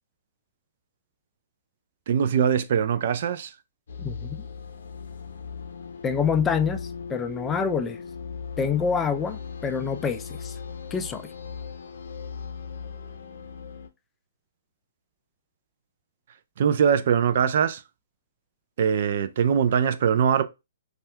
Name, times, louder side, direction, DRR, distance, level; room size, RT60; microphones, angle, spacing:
voice 1, 2.1-3.5 16.6-17.8 18.8-20.4, right 7 dB, 55° right, 0.4 m, -22 dB
sound 1, 3.9-13.9, left 6 dB, 70° left, 0.6 m, -38 dB
voice 2, 4.0-4.4 6.0-6.8 7.1-8.0 8.6-10.5 10.9-11.2, left 6 dB, 15° left, 0.3 m, -26 dB
2.6 x 2.4 x 3.3 m
hypercardioid pair, 135°, 0 cm